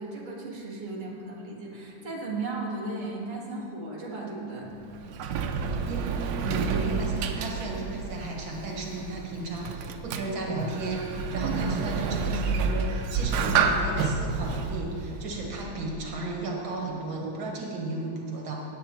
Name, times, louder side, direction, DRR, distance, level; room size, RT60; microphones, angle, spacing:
voice 1, 0.0-4.7 11.4-11.5, right 3 dB, 25° right, -4 dB, 1.6 m, -35 dB
Sliding door, 4.6-16.1, right 5 dB, 90° right, 1.5 m, -30 dB
voice 2, 6.4-18.6, right 2 dB, 70° right, -1 dB, 2.0 m, -34 dB
17.0 x 8.8 x 3.0 m, 2.6 s
omnidirectional pair, 2.2 m